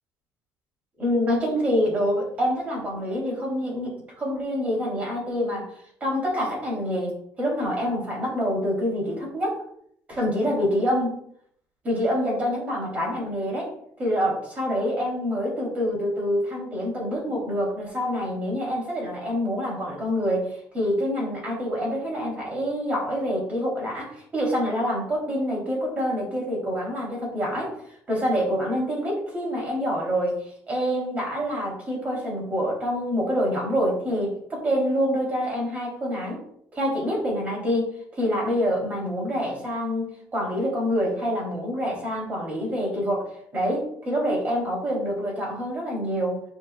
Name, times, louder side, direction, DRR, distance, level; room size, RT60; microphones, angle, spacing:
voice 1, 1.0-9.6 10.1-11.1 11.8-13.7 14.0-27.8 28.1-36.4 36.7-46.4, equal, 25° right, -2 dB, 3.1 m, -26 dB
13.5 x 4.6 x 2.3 m, 0.68 s
cardioid pair, 165°, 6 cm